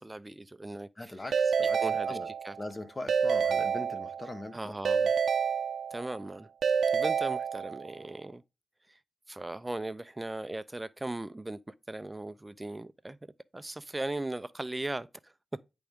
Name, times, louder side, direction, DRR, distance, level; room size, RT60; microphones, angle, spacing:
voice 1, 0.0-1.4 1.8-2.6 4.5-5.1 5.9-6.5 6.9-8.4 8.9-9.0 9.3-13.2 13.5-15.3, right 2 dB, 20° right, 0.5 m, -38 dB
voice 2, 1.0-1.8 2.1-2.3 2.6-4.6, left 2 dB, 30° left, 1.2 m, -40 dB
Keyboard (musical) / Ringtone, 1.3-2.7 3.1-4.4 4.8-6.2 6.6-8.0, right 6 dB, 80° right, 0.6 m, -28 dB
9.7 x 3.5 x 3.5 m
cardioid pair, 55°, 0 cm